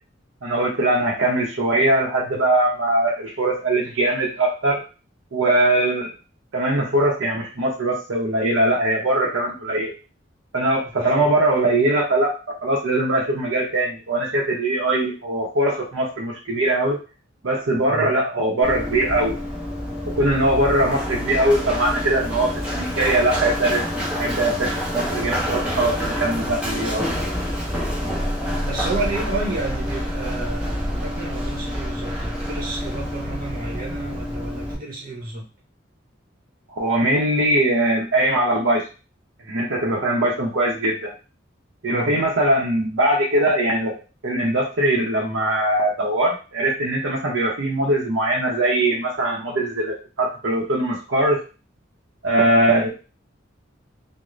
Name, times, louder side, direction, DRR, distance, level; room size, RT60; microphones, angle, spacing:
voice 1, 0.4-4.8 5.3-6.1 6.5-9.9 10.5-12.4 12.6-17.0 17.4-19.4 20.1-23.9 24.2-27.1 36.7-38.8 39.5-41.1 41.8-43.9 44.2-51.4 52.2-52.9, right 1 dB, 80° right, -2 dB, 0.7 m, -21 dB
voice 2, 10.8-11.3 17.8-18.1 28.6-35.5 41.9-42.2, right 2 dB, 50° right, -1 dB, 0.9 m, -31 dB
Run, 18.6-34.7, equal, 5° right, 0.7 m, -27 dB
2.4 x 2.0 x 3.1 m, 0.33 s
head